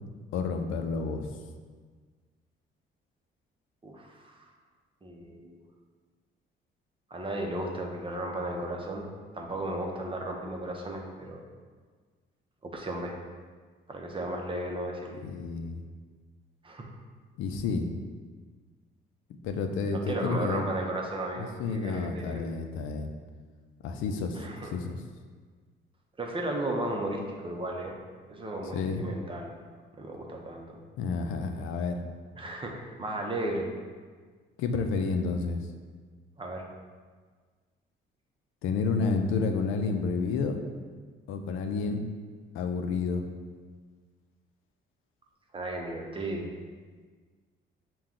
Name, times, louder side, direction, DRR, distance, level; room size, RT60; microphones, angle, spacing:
voice 1, 0.3-1.3 15.1-15.8 17.4-17.9 19.4-20.7 21.4-23.1 23.8-25.0 28.7-29.0 31.0-32.0 34.6-35.6 38.6-40.6 41.3-42.0 42.5-43.2, left 4 dB, 90° left, 5 dB, 0.4 m, -30 dB
voice 2, 3.8-4.5 5.0-5.6 7.1-9.1 9.3-11.4 12.6-13.2 13.9-15.2 16.6-16.9 19.9-22.4 24.4-24.7 26.2-28.0 28.3-29.5 30.0-30.7 32.4-33.7 36.4-36.6 45.5-46.5, right 1 dB, 25° right, 1 dB, 0.7 m, -35 dB
5.7 x 2.3 x 3.7 m, 1.5 s
cardioid pair, 90°, 20 cm